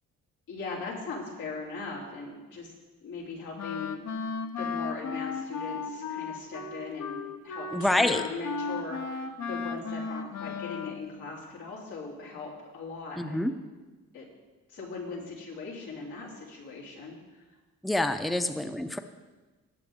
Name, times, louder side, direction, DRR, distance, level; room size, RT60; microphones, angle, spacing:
voice 1, 0.5-2.7 3.0-4.0 4.4-13.5 14.1-14.3 14.7-17.2 18.2-18.4, left 4 dB, 90° left, -4 dB, 3.5 m, -39 dB
Wind instrument woodwind instrument, 3.6-11.1, left 5 dB, 65° left, 1.0 m, -35 dB
voice 2, 7.7-8.2 13.2-13.5 17.8-19.0, left 1 dB, ahead, 9 dB, 0.6 m, -26 dB
18.5 x 7.6 x 3.7 m, 1.2 s
cardioid pair, 90°, 30 cm